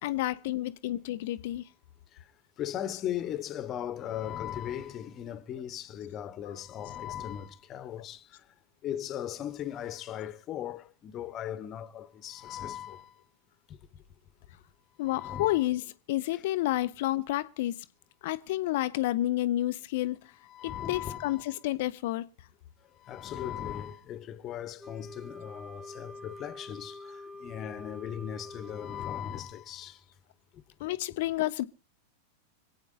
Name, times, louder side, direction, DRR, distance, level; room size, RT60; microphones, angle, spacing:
voice 1, 0.0-1.7 6.4-6.6 7.1-7.2 15.0-17.8 18.2-20.3 20.6-22.3 30.8-31.6, left 15 dB, 50° left, 0.7 m, -30 dB
voice 2, 2.6-8.4 8.8-13.2 13.7-13.8 15.1-15.6 20.5-21.5 22.9-30.0 30.5-30.6, left 10 dB, 30° left, 1.2 m, -38 dB
Wind instrument woodwind instrument, 24.8-29.3, left 2 dB, ahead, 1.5 m, -45 dB
25.5 x 8.8 x 4.0 m
figure-of-eight pair, 90°, 0 cm